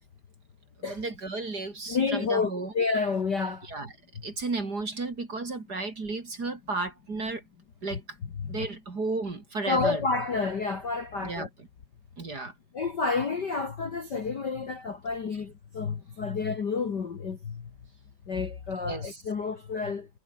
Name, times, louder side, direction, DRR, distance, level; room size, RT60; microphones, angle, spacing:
voice 1, 0.9-2.7 3.6-3.9 4.2-7.4 7.8-8.2 8.5-10.0 11.2-11.5 12.2-12.5 18.8-19.2, right 3 dB, 30° right, 3.3 m, -33 dB
voice 2, 1.9-3.7 8.4-8.5 9.7-11.5 12.7-17.7 18.3-20.1, left 4 dB, 40° left, 1.9 m, -29 dB
omnidirectional pair, 3.6 m